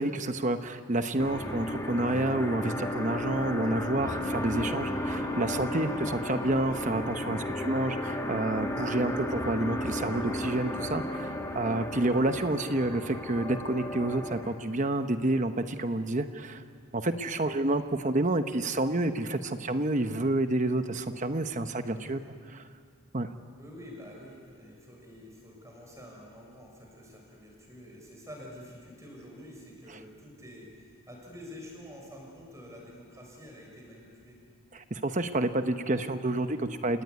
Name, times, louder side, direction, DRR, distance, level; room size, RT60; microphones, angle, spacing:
voice 1, 0.0-16.6 16.9-22.2 22.5-22.6 23.1-23.3 34.7-37.0, right 2 dB, 35° right, 9 dB, 0.9 m, -29 dB
sound 1, 1.2-14.5, left 1 dB, 15° left, 2.1 m, -34 dB
voice 2, 23.6-34.4, equal, 15° right, -1 dB, 6.3 m, -48 dB
29.5 x 18.0 x 9.6 m, 2.1 s
head